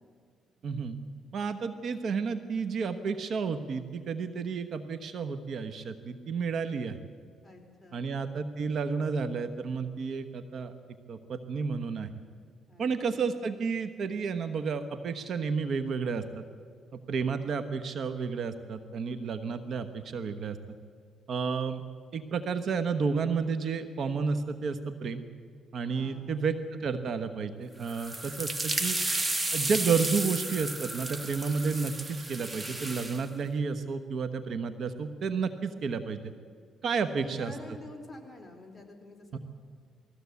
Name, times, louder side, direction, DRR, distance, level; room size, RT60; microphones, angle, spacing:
voice 1, 0.6-1.0 1.3-7.0 7.9-10.7 11.1-12.1 12.8-16.4 16.9-20.6 21.3-21.8 22.1-25.2 25.7-29.0 29.5-36.3 36.8-37.5 39.3-39.4, right 5 dB, 60° right, 9 dB, 1.1 m, -31 dB
voice 2, 7.4-8.1 12.7-13.2 25.9-26.5 37.0-39.4, left 2 dB, 10° left, 1 dB, 4.0 m, -48 dB
sound 1, 27.8-33.2, right 2 dB, 20° right, 1.4 m, -33 dB
20.5 x 15.5 x 8.3 m, 2.2 s
cardioid pair, 90°, 0 cm